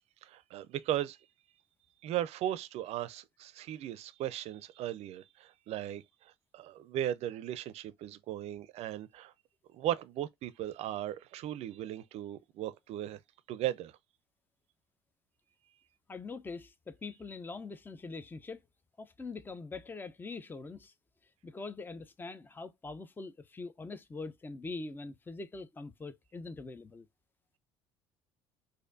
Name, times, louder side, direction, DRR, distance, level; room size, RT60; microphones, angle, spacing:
voice 1, 0.2-1.2 2.0-9.3 9.7-13.2 13.5-13.9, right 12 dB, 55° right, 0.5 m, -37 dB
voice 2, 16.1-18.6 19.0-20.9 21.4-27.1, left 3 dB, 15° left, 0.5 m, -43 dB
4.2 x 2.6 x 2.5 m
hypercardioid pair, 60°, 13 cm